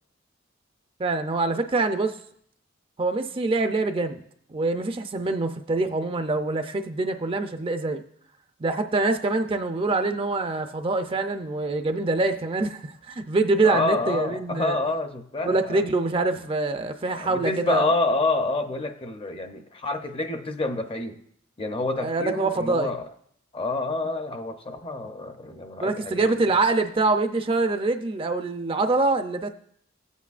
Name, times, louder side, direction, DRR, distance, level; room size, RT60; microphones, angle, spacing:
voice 1, 1.0-2.2 3.0-4.2 4.5-8.0 8.6-14.8 15.4-17.9 22.0-22.9 25.8-29.5, right 3 dB, 25° right, 7 dB, 0.4 m, -25 dB
voice 2, 13.6-15.9 17.1-21.2 21.6-23.1 23.5-26.3, left 2 dB, 30° left, 7 dB, 0.6 m, -28 dB
15.5 x 8.2 x 2.4 m, 0.67 s
head